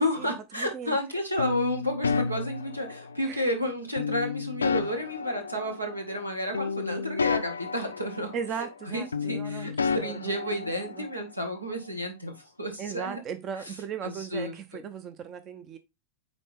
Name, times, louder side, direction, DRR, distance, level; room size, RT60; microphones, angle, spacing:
voice 1, 0.0-13.2 14.0-14.8, left 1 dB, 85° right, 1.7 m, -32 dB
voice 2, 0.6-1.0 3.2-3.5 8.3-11.1 12.8-15.8, right 7 dB, 30° right, 0.6 m, -37 dB
sound 1, 1.4-3.4 4.0-6.3 6.5-8.9 9.1-11.2, left 5 dB, 75° left, 0.5 m, -31 dB
9.1 x 3.8 x 3.4 m
figure-of-eight pair, 90°, 0 cm